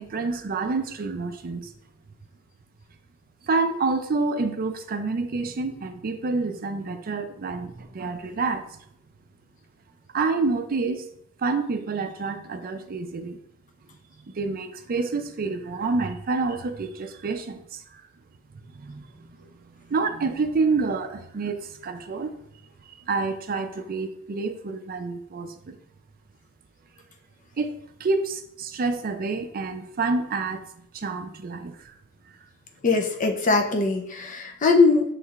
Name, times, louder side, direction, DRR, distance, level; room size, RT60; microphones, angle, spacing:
voice 1, 0.0-1.7 3.4-8.8 10.1-11.0 11.4-13.4 14.3-18.0 18.7-22.3 23.1-25.8 27.6-31.9, right 3 dB, 45° right, 7 dB, 0.4 m, -28 dB
voice 2, 32.8-35.1, left 4 dB, 35° left, 5 dB, 0.5 m, -21 dB
6.2 x 3.2 x 2.4 m, 0.70 s
head